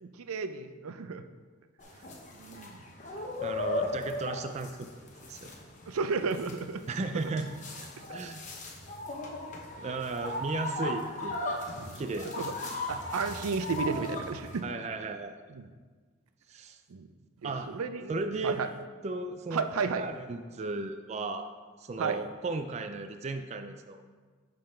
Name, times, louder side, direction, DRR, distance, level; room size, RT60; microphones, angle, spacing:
voice 1, 0.0-1.2 2.4-2.8 5.9-6.8 7.1-7.2 11.8-12.0 12.4-12.5 12.9-14.7 15.5-15.7 16.9-17.1 17.4-18.2 18.4-18.7 19.5-20.0 22.0-22.2, right 5 dB, 90° right, 10 dB, 0.5 m, -33 dB
sound 1, 1.8-14.6, left 2 dB, 35° left, 0.9 m, -37 dB
voice 2, 3.4-4.9 5.2-5.5 6.9-7.5 8.1-8.4 9.8-11.7 11.9-12.4 14.6-15.3 16.5-16.8 17.4-17.7 18.1-18.6 19.0-19.7 20.0-21.5 21.8-24.0, right 3 dB, 30° right, 7 dB, 0.3 m, -35 dB
10.5 x 3.9 x 4.3 m, 1.5 s
head